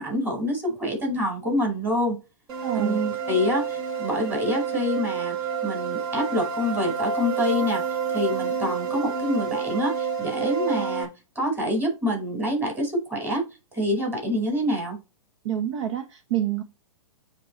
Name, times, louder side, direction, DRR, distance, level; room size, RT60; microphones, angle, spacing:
voice 1, 0.0-2.1 2.7-5.3 5.6-7.8 8.1-11.1 11.3-13.4 13.7-15.0, left 1 dB, 10° right, 4.6 m, -26 dB
sound 1, 2.5-11.0, right 6 dB, 40° right, 2.1 m, -29 dB
voice 2, 2.6-3.0 15.4-16.6, right 11 dB, 60° right, 1.2 m, -27 dB
9.4 x 3.9 x 3.2 m
hypercardioid pair, 125°, 17 cm